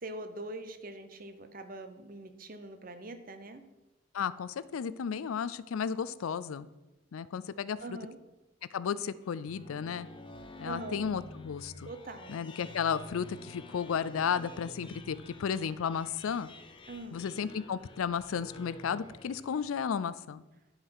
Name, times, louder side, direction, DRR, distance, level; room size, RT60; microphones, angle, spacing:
voice 1, 0.0-3.6 7.8-8.2 10.6-11.0 11.9-12.4 16.9-17.2, right 2 dB, 40° right, 8 dB, 0.8 m, -43 dB
voice 2, 4.1-6.7 7.1-8.0 8.7-10.1 10.6-11.9 12.3-16.5 17.1-20.4, left 7 dB, 85° left, 16 dB, 0.4 m, -33 dB
sound 1, 9.2-20.1, left 2 dB, 25° left, 0.6 m, -50 dB
11.0 x 4.8 x 5.7 m, 1.0 s
head